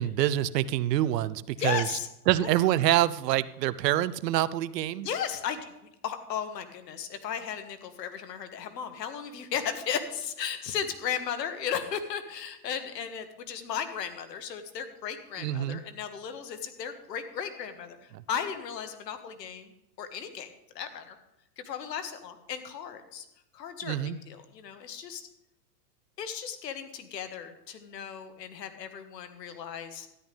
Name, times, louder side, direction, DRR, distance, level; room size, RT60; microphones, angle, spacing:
voice 1, 0.0-1.9 2.3-5.1 15.4-15.8 23.8-24.2, right 13 dB, 85° right, 18 dB, 0.7 m, -26 dB
voice 2, 1.6-2.1 2.4-2.5 5.0-19.7 20.0-20.5 20.7-21.2 21.6-23.2 23.5-24.0 24.3-25.3 26.2-30.1, left 8 dB, 90° left, 8 dB, 1.5 m, -35 dB
13.0 x 10.5 x 3.4 m, 0.88 s
supercardioid pair, 135°, 48 cm